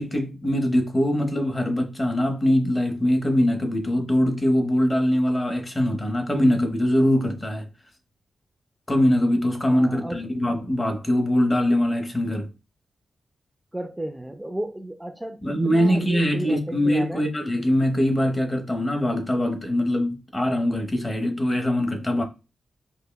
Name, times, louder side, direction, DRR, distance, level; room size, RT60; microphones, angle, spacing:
voice 1, 0.0-7.7 8.9-12.5 15.4-22.2, left 1 dB, 20° left, 0.8 m, -22 dB
voice 2, 9.7-10.3 13.7-17.3, right 1 dB, 10° right, 0.4 m, -34 dB
5.4 x 2.1 x 2.2 m
wide cardioid pair, 100°, 0 cm